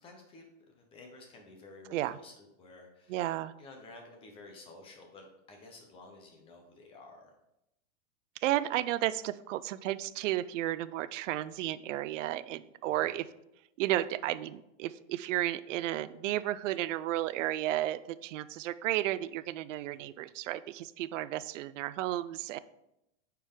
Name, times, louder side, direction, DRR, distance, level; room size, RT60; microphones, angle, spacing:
voice 1, 0.0-3.2 3.6-7.3 12.9-13.2 19.9-20.0, left 2 dB, 15° left, 2 dB, 0.7 m, -52 dB
voice 2, 3.1-3.5 8.4-13.3 13.8-22.6, right 14 dB, 75° right, 16 dB, 0.5 m, -33 dB
8.1 x 4.6 x 3.7 m, 0.85 s
supercardioid pair, 170°, 38 cm